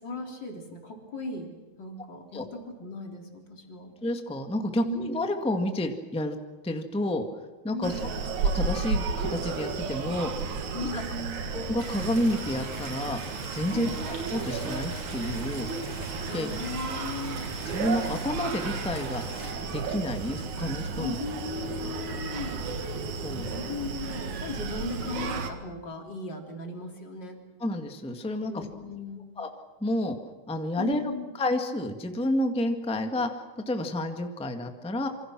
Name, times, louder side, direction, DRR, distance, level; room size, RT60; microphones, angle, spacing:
voice 1, 0.0-1.5 1.8-3.9 4.8-5.2 7.7-8.3 10.7-11.4 13.7-14.0 16.3-17.4 20.9-22.7 23.3-27.4 28.4-29.3 30.8-31.3, left 3 dB, 35° left, 3 dB, 4.1 m, -37 dB
voice 2, 4.0-6.4 6.6-7.2 7.6-8.1 8.4-10.3 10.8-11.0 11.5-13.2 13.5-15.7 16.3-16.5 17.6-19.3 19.7-21.2 23.2-23.5 27.6-28.6 29.4-29.5 29.8-30.1 30.5-31.0 31.3-35.1, left 1 dB, 5° left, 5 dB, 1.4 m, -30 dB
Screaming, 7.8-25.5, right 4 dB, 75° right, 3.3 m, -33 dB
sound 1, 11.8-19.5, right 2 dB, 60° right, 6.2 m, -43 dB
27.5 x 25.5 x 6.2 m, 1.3 s
omnidirectional pair, 3.3 m